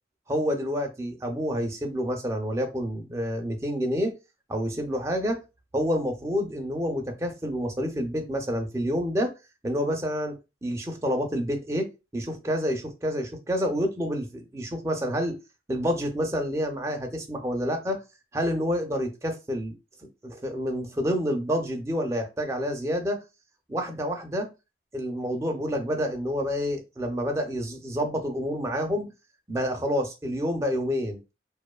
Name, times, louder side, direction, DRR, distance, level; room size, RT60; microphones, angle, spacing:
voice 1, 0.3-4.1 4.5-5.4 5.7-9.3 9.6-11.9 12.1-15.4 15.7-18.0 18.3-19.7 20.2-23.2 23.7-24.5 24.9-29.1 29.5-31.2, equal, 15° right, 3 dB, 0.4 m, -28 dB
2.5 x 2.2 x 2.3 m, 0.27 s
head